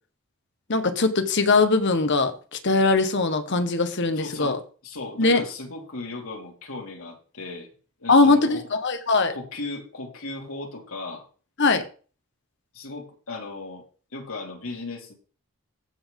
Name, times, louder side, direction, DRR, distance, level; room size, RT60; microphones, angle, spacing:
voice 1, 0.7-4.6 5.2-5.4 8.1-9.3 11.6-11.8, left 3 dB, 55° left, 1.2 m, -21 dB
voice 2, 4.2-7.7 8.0-8.7 9.3-11.2 12.7-13.8 14.1-15.1, left 3 dB, 75° left, 2.6 m, -36 dB
15.0 x 5.5 x 3.8 m
head